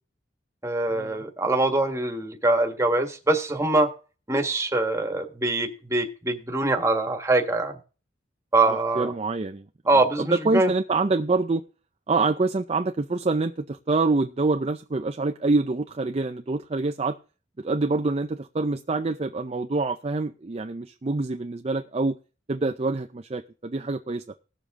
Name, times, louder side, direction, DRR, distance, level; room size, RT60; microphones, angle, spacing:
voice 1, 0.6-3.9 4.3-7.7 8.5-9.1 9.9-10.7, right 2 dB, 15° right, 4 dB, 1.6 m, -23 dB
voice 2, 8.6-9.6 9.9-11.6 12.1-17.2 17.6-22.2 22.5-24.2, right 3 dB, 35° right, 6 dB, 0.5 m, -26 dB
18.5 x 7.1 x 3.7 m, 0.35 s
head